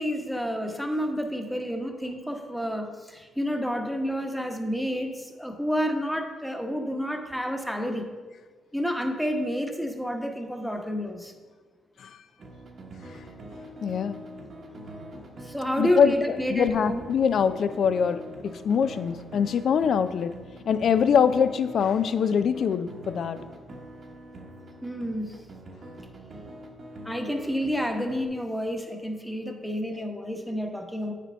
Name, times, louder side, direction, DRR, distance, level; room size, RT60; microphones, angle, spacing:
voice 1, 0.0-8.1 8.7-11.3 15.4-17.0 24.8-25.3 27.0-31.1, equal, ahead, 4 dB, 0.9 m, -29 dB
sound 1, 12.4-28.3, right 1 dB, 50° right, 1.0 m, -44 dB
voice 2, 13.8-14.2 15.8-20.4 20.7-23.4, left 7 dB, 60° left, 12 dB, 0.4 m, -23 dB
8.3 x 5.0 x 3.3 m, 1.4 s
supercardioid pair, 65°, 0 cm